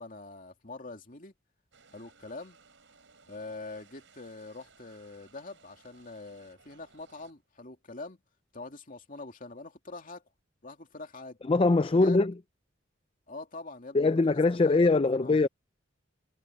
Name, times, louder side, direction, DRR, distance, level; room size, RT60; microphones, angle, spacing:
voice 1, 0.0-1.3 1.9-2.6 3.3-8.2 8.5-10.2 10.6-11.4 11.9-12.2 13.3-14.8 15.1-15.4, left 3 dB, 45° left, 2.7 m, -44 dB
sound 1, 1.7-7.3, right 5 dB, 70° right, 5.8 m, -61 dB
voice 2, 11.5-12.3 13.9-15.5, left 3 dB, 30° left, 0.4 m, -22 dB
head